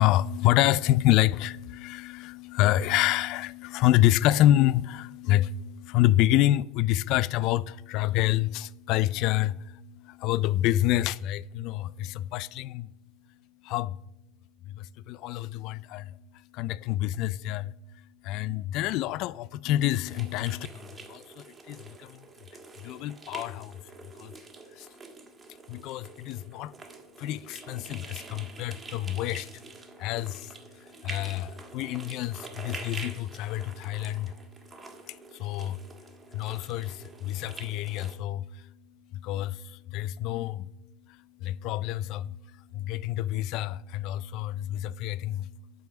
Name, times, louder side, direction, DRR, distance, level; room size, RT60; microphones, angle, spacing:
voice 1, 0.0-12.9 13.6-14.0 14.7-22.2 22.8-23.8 24.2-24.3 24.7-24.9 25.7-26.8 27.2-34.8 35.1-45.7, left 14 dB, 55° left, 0.4 m, -28 dB
sound 1, 20.0-38.1, right 4 dB, 20° right, 1.8 m, -46 dB
9.2 x 6.5 x 6.9 m
hypercardioid pair, 80°, 0 cm